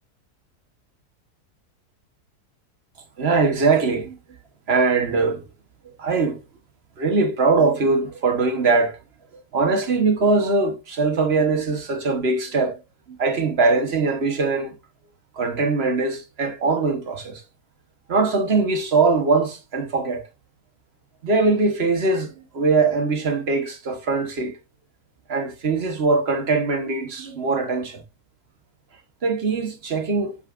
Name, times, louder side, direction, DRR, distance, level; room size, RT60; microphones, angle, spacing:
voice 1, 3.2-4.2 4.7-5.4 6.0-6.4 7.0-9.0 9.5-12.8 13.2-14.7 15.4-17.4 18.1-20.2 21.2-24.5 25.3-28.0 29.2-30.4, right 3 dB, 45° right, 1.3 m, -21 dB
7.5 x 5.6 x 2.4 m
omnidirectional pair, 1.7 m